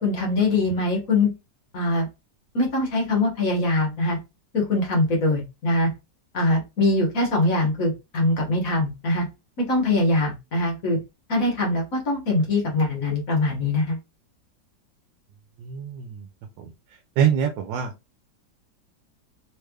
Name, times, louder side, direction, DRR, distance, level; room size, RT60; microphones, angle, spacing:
voice 1, 0.0-1.3 1.7-2.1 2.5-4.2 4.5-5.9 6.3-9.2 9.6-11.0 11.3-14.0, left 2 dB, 50° left, 0 dB, 1.5 m, -22 dB
voice 2, 15.6-16.3 16.6-16.7 17.2-17.9, right 8 dB, 85° right, 6 dB, 1.3 m, -24 dB
3.4 x 3.2 x 2.2 m, 0.24 s
omnidirectional pair, 2.0 m